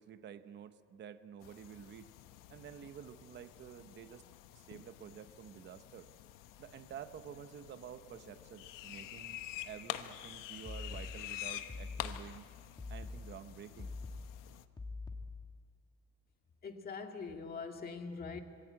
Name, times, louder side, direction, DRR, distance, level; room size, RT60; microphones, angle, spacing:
voice 1, 0.0-2.1 2.5-4.3 4.5-6.1 6.6-12.5 12.9-13.9, right 9 dB, 35° right, 11 dB, 0.9 m, -50 dB
sound 1, 1.4-14.6, left 13 dB, 85° left, 1.2 m, -48 dB
sound 2, 10.7-15.6, left 3 dB, 15° left, 1.7 m, -45 dB
voice 2, 16.6-18.4, left 4 dB, 30° left, 4 dB, 2.0 m, -43 dB
26.5 x 22.5 x 8.8 m, 2.2 s
cardioid pair, 175°, 31 cm